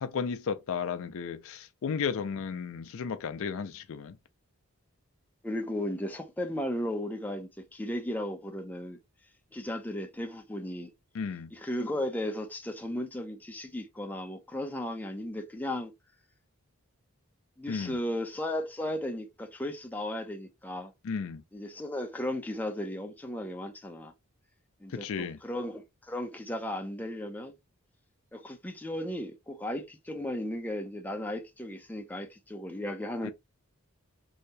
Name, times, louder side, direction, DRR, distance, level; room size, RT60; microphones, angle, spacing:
voice 1, 0.0-4.2 11.1-11.5 17.7-18.0 21.0-21.4 24.9-25.4 33.2-33.3, left 6 dB, 65° left, 0.4 m, -34 dB
voice 2, 5.4-9.0 9.5-10.9 11.5-15.9 17.6-20.9 21.5-24.1 24.8-27.6 28.3-33.3, left 1 dB, 10° left, 0.6 m, -35 dB
2.8 x 2.7 x 3.3 m
head